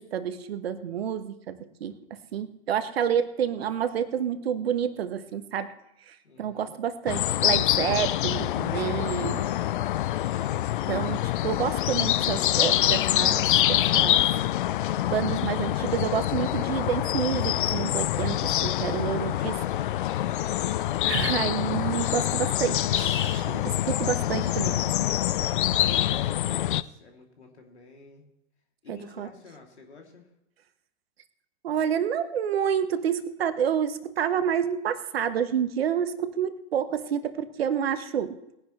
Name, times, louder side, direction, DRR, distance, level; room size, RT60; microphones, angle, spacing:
voice 1, 0.0-5.7 6.0-9.5 10.9-14.2 15.1-19.6 21.0-24.8 25.3-25.5 28.9-29.3 31.6-38.4, right 8 dB, 60° right, 11 dB, 1.3 m, -29 dB
voice 2, 6.2-6.7 25.5-28.3 28.8-30.3, left 4 dB, 70° left, 2 dB, 2.9 m, -48 dB
sound 1, 7.1-26.8, left 13 dB, 50° left, 0.5 m, -25 dB
20.5 x 10.5 x 3.2 m, 0.86 s
figure-of-eight pair, 100°, 35 cm